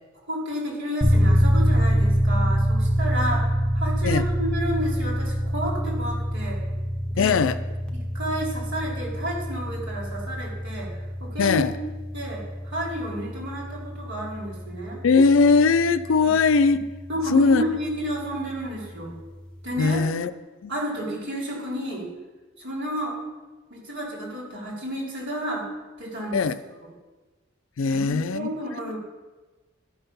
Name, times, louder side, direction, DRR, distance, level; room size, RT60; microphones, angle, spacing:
voice 1, 0.3-6.6 7.1-7.4 7.9-10.9 11.2-11.6 12.1-15.0 16.2-16.3 17.1-19.1 19.6-20.0 20.7-22.1 22.6-23.2 23.7-25.7 26.0-26.4 27.9-29.0, equal, 60° right, -2 dB, 2.8 m, -31 dB
sound 1, 1.0-17.7, equal, 5° left, 0.8 m, -25 dB
voice 2, 7.2-7.6 11.4-11.8 15.0-16.8 17.3-17.6 19.8-20.3 20.6-20.7 26.3-26.5 27.8-28.5, left 4 dB, 70° left, 12 dB, 0.5 m, -20 dB
11.0 x 5.7 x 5.5 m, 1.2 s
head